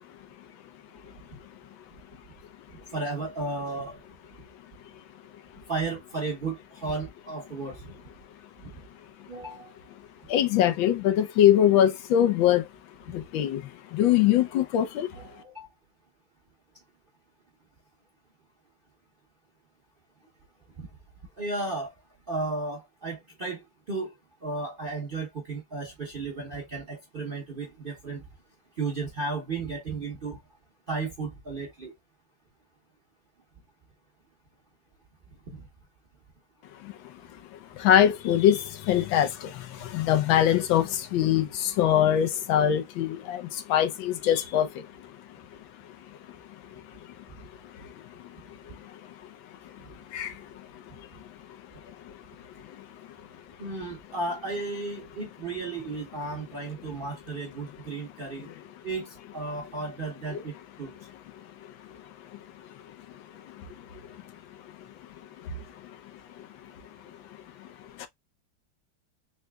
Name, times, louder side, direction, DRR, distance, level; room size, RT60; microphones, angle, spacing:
voice 1, 2.9-4.0 5.7-7.8 9.3-9.7 15.1-15.7 20.8-20.9 21.4-21.9 22.3-23.6 23.9-24.1 24.4-28.2 28.8-30.4 30.9-31.9 35.5-35.6 53.6-58.5 58.8-59.1 59.3-60.5 60.8-60.9, right 3 dB, 50° right, 0.6 m, -34 dB
voice 2, 10.3-12.7 13.1-15.1 36.8-36.9 37.8-44.9 50.1-50.3 63.6-63.7 67.6-67.7 68.0-68.1, left 10 dB, 90° left, 1.5 m, -23 dB
4.0 x 3.3 x 2.2 m
omnidirectional pair, 2.1 m